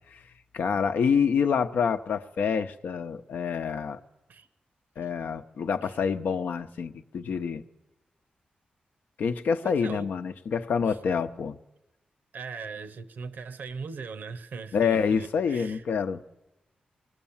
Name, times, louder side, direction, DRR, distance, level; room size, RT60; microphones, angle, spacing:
voice 1, 0.5-4.0 5.0-7.6 9.2-11.6 14.7-16.2, left 6 dB, 85° left, 0.8 m, -27 dB
voice 2, 9.6-10.2 10.9-11.0 12.3-15.8, right 5 dB, 80° right, 0.8 m, -40 dB
24.5 x 19.5 x 7.2 m
cardioid pair, 75°, 3 cm